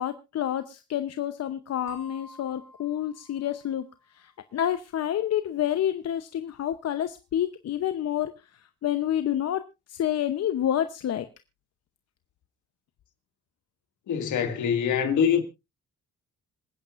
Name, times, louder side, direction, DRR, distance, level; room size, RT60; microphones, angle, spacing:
voice 1, 0.0-3.8 4.2-8.3 8.8-9.6 9.9-11.3, left 11 dB, 55° left, 0.8 m, -28 dB
sound 1, 1.9-4.4, left 1 dB, 80° right, 3.9 m, -50 dB
voice 2, 14.1-15.4, left 7 dB, 75° left, 2.1 m, -24 dB
26.5 x 9.5 x 2.5 m
cardioid pair, 90°, 30 cm